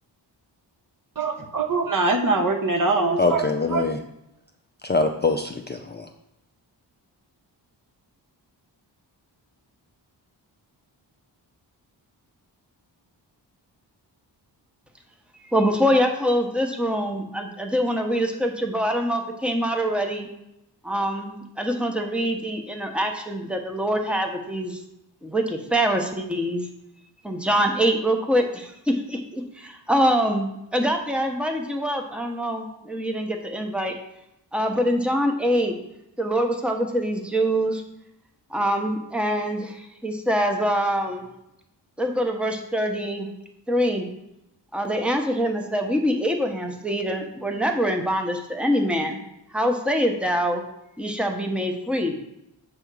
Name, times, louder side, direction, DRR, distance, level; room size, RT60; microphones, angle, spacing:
voice 1, 1.2-3.9, right 3 dB, 45° right, 0.9 m, -23 dB
voice 2, 3.2-4.0 4.8-6.1, left 3 dB, 25° left, 0.4 m, -24 dB
voice 3, 15.5-20.3 20.8-24.8 25.2-26.7 27.2-34.0 34.5-35.7 36.2-37.8 38.5-41.3 42.0-43.3 43.7-44.1 44.7-49.2 49.5-50.6 51.0-52.2, equal, ahead, 0.8 m, -24 dB
7.8 x 3.5 x 6.1 m
wide cardioid pair, 140°, 44 cm